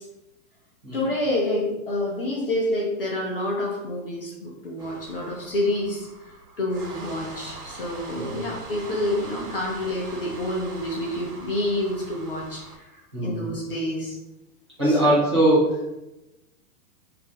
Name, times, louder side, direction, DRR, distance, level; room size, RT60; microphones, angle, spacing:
voice 1, 0.9-6.1 6.6-14.2 14.8-15.1, left 1 dB, 40° left, -3 dB, 0.4 m, -28 dB
sound 1, 4.8-12.8, right 2 dB, 80° right, 1.0 m, -42 dB
voice 2, 8.1-8.5 13.1-13.5 14.8-16.0, right 1 dB, 20° right, -11 dB, 0.4 m, -22 dB
2.4 x 2.0 x 3.8 m, 0.97 s
hypercardioid pair, 175°, 45 cm